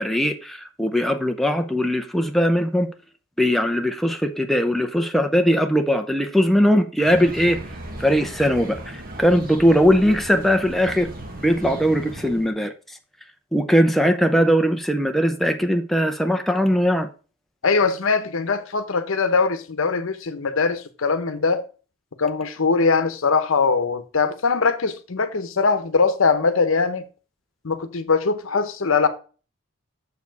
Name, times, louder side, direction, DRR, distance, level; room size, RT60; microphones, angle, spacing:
voice 1, 0.0-2.9 3.4-7.6 8.0-11.1 11.4-13.0 13.5-17.1, equal, ahead, 0.5 m, -20 dB
sound 1, 7.0-12.5, right 1 dB, 45° right, 1.4 m, -37 dB
voice 2, 17.6-21.6 22.2-27.0 27.6-29.1, left 4 dB, 80° left, 0.8 m, -21 dB
7.0 x 4.6 x 4.7 m
head